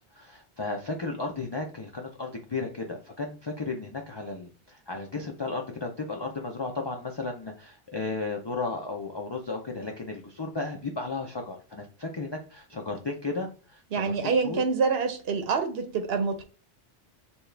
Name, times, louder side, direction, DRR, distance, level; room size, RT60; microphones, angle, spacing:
voice 1, 0.1-14.6, left 3 dB, 35° left, 0.4 m, -34 dB
voice 2, 13.9-16.4, right 5 dB, 65° right, 0.9 m, -26 dB
7.0 x 2.3 x 3.2 m
omnidirectional pair, 1.2 m